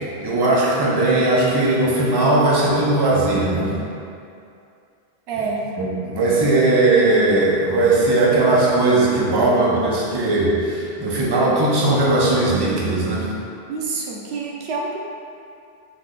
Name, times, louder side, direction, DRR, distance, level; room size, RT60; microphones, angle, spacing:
voice 1, 0.2-3.7 5.8-13.3, right 2 dB, 25° right, -5 dB, 0.6 m, -18 dB
voice 2, 5.3-5.7 13.7-15.0, right 4 dB, 80° right, -1 dB, 0.8 m, -27 dB
4.0 x 3.1 x 3.7 m, 2.5 s
omnidirectional pair, 1.1 m